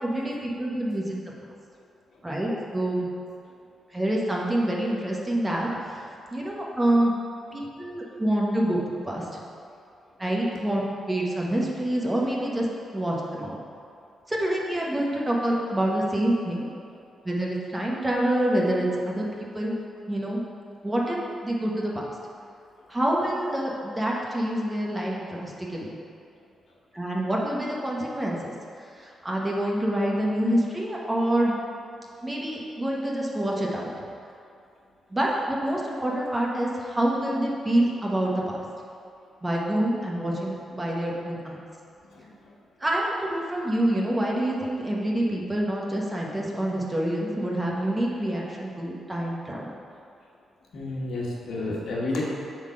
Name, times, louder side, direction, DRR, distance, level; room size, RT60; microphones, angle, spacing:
voice 1, 0.0-1.2 2.2-3.1 3.9-6.1 6.3-7.1 7.5-8.8 9.1-9.3 10.2-12.7 12.9-13.5 14.3-16.6 17.2-19.8 20.1-20.4 20.8-21.2 21.4-22.0 22.9-25.9 26.9-28.4 29.0-31.5 32.2-33.9 35.1-38.6 39.4-41.6 42.8-49.7, right 1 dB, 15° right, -3 dB, 1.0 m, -26 dB
voice 2, 50.7-52.2, left 2 dB, 70° left, -4 dB, 1.4 m, -30 dB
8.0 x 3.8 x 5.0 m, 2.5 s
cardioid pair, 110°, 0 cm